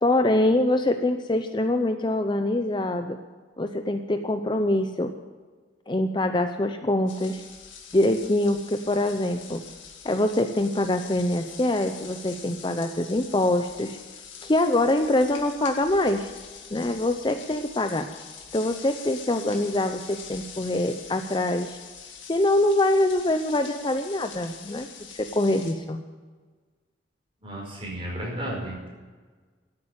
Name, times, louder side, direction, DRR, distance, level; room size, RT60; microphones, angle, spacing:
voice 1, 0.0-3.2 3.6-5.1 5.9-7.4 7.9-9.6 10.0-14.0 14.4-16.3 16.7-18.1 18.5-21.8 22.3-26.0, left 1 dB, 25° left, 7 dB, 0.6 m, -24 dB
sound 1, 7.1-25.7, left 7 dB, 85° left, 2.1 m, -44 dB
voice 2, 27.4-28.9, right 1 dB, 30° right, -2 dB, 5.0 m, -33 dB
13.5 x 8.7 x 8.7 m, 1.4 s
head